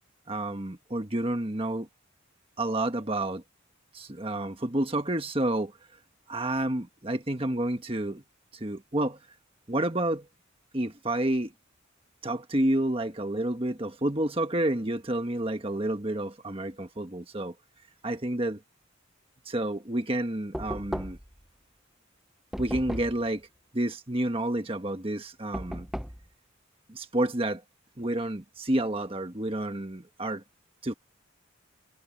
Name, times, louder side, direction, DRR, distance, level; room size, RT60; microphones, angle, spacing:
voice 1, 0.3-1.9 2.6-3.4 3.9-5.7 6.3-8.2 8.5-9.2 9.7-10.3 10.7-11.5 12.2-17.5 18.0-18.6 19.4-21.2 22.6-23.5 23.7-25.9 26.9-27.6 28.0-30.4 30.8-30.9, right 1 dB, 25° right, 1.4 m, -29 dB
Knock, 20.5-21.4 22.5-23.3 25.5-26.3, equal, ahead, 0.6 m, -36 dB
head